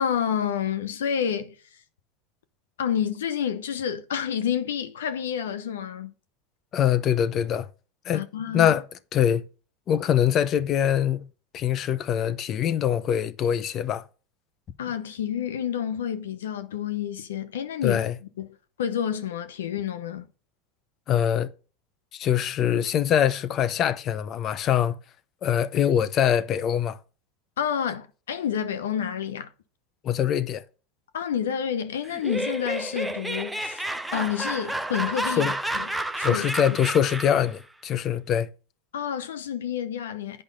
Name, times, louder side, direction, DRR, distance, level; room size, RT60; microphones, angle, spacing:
voice 1, 0.0-1.6 2.8-6.1 8.1-8.7 14.8-18.0 18.4-20.3 27.6-29.5 31.1-35.9 36.2-36.5 38.9-40.4, left 8 dB, 90° left, 0.9 m, -29 dB
voice 2, 6.7-7.7 8.0-8.2 8.5-8.8 9.1-9.4 9.9-11.3 11.5-14.0 17.8-18.1 21.1-21.5 22.1-25.0 25.4-27.0 30.0-30.6 35.4-35.5 36.2-38.5, left 9 dB, 40° left, 0.8 m, -23 dB
Laughter, 32.0-37.5, right 1 dB, 5° right, 0.6 m, -30 dB
8.8 x 5.2 x 5.1 m
hypercardioid pair, 100°, 0 cm